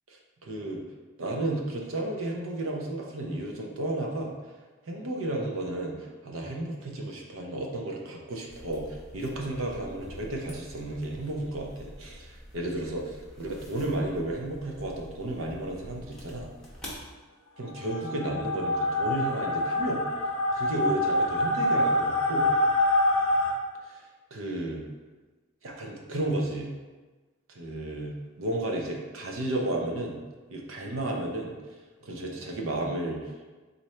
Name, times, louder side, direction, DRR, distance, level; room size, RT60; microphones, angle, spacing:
voice 1, 0.1-0.8 1.2-4.3 4.9-16.5 17.6-20.0 20.5-22.5 23.9-24.0 24.3-24.8 25.6-26.7 27.5-30.2 30.5-31.5 32.0-33.2, right 1 dB, 70° right, 0 dB, 0.6 m, -33 dB
sound 1, 8.5-17.0, equal, 5° left, 0.8 m, -47 dB
sound 2, 17.8-23.5, left 1 dB, 75° left, 0.6 m, -26 dB
4.1 x 2.6 x 3.1 m, 1.3 s
head